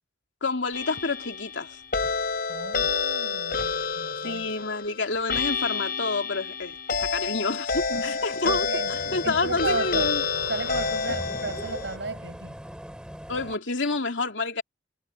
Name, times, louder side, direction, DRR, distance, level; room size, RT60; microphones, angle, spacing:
voice 1, 0.4-1.8 4.2-8.7 9.1-10.2 11.1-11.2 13.3-14.6, left 3 dB, 90° left, 2.8 m, -28 dB
sound 1, 0.7-12.0, left 5 dB, 55° left, 4.4 m, -29 dB
voice 2, 2.5-4.7 7.9-10.1 10.5-12.6, right 3 dB, 75° right, 6.8 m, -34 dB
sound 2, 8.5-13.6, equal, 5° right, 6.7 m, -41 dB
head